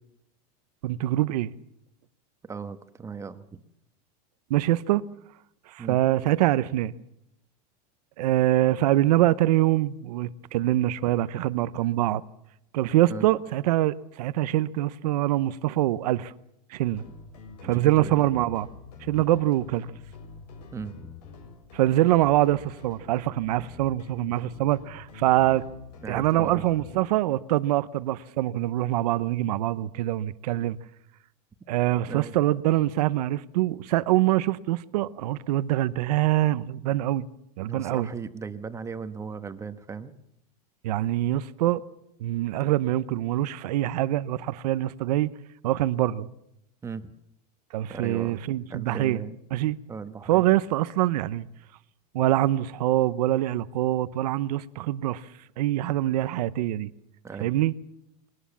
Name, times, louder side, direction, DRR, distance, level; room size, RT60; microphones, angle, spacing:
voice 1, 0.8-1.5 4.5-5.0 5.7-6.9 8.2-12.2 12.7-16.3 16.7-17.0 17.6-18.7 19.1-19.9 21.7-25.6 26.1-30.8 31.7-37.2 37.6-38.1 40.8-41.8 42.2-45.3 45.6-46.3 47.7-49.2 49.5-49.8 50.3-51.5 52.1-55.3 55.6-56.9 57.4-57.7, right 14 dB, 75° right, 0.9 m, -24 dB
voice 2, 2.4-3.6 5.8-6.0 13.1-13.2 17.6-18.2 19.2-19.3 20.7-21.1 26.0-26.6 32.1-32.4 37.7-40.1 46.8-47.1 47.9-48.4 48.7-49.4 49.9-50.4 57.2-57.5, right 5 dB, 15° right, 1.3 m, -37 dB
sound 1, 16.9-27.0, left 5 dB, 90° left, 7.2 m, -46 dB
22.5 x 19.0 x 7.2 m
supercardioid pair, 140°, 20 cm